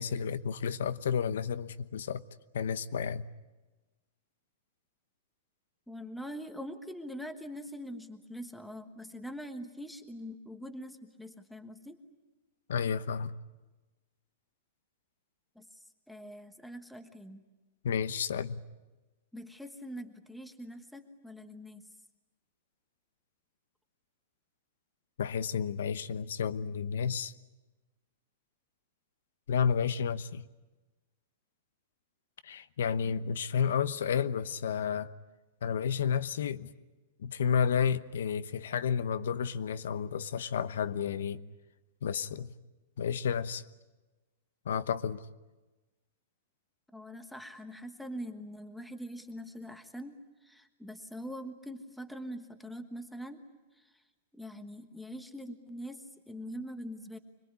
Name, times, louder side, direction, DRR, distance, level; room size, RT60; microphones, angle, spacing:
voice 1, 0.0-2.2 2.5-3.3 12.7-13.4 17.8-18.6 25.2-27.3 29.5-30.4 32.4-35.1 35.6-36.7 37.2-41.4 42.0-42.5 43.0-43.6 44.6-45.3, left 7 dB, 90° left, 1.0 m, -31 dB
voice 2, 5.9-12.0 15.5-15.7 16.1-17.4 19.3-21.8 46.9-53.4 53.8-53.9 54.3-57.2, equal, ahead, 1.3 m, -43 dB
26.0 x 21.0 x 9.7 m
supercardioid pair, 170°, 0 cm